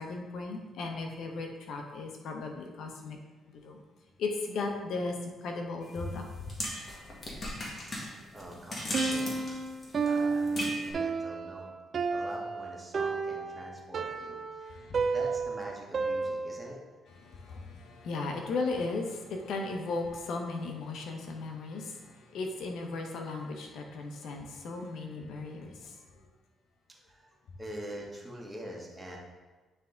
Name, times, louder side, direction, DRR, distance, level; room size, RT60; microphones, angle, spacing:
voice 1, 0.0-3.2 3.5-3.8 4.2-6.2 14.7-15.0 17.2-25.9, left 3 dB, 75° left, 2 dB, 1.0 m, -36 dB
sound 1, 5.8-10.9, left 1 dB, 35° left, 1.7 m, -38 dB
voice 2, 7.9-9.3 10.0-11.7 12.1-14.7 15.1-16.8 27.0-27.3 27.6-29.2, right 1 dB, 10° right, -2 dB, 1.6 m, -44 dB
Piano, 8.9-16.8, right 4 dB, 50° right, 0.4 m, -32 dB
9.1 x 3.6 x 3.9 m, 1.3 s
cardioid pair, 90°, 0 cm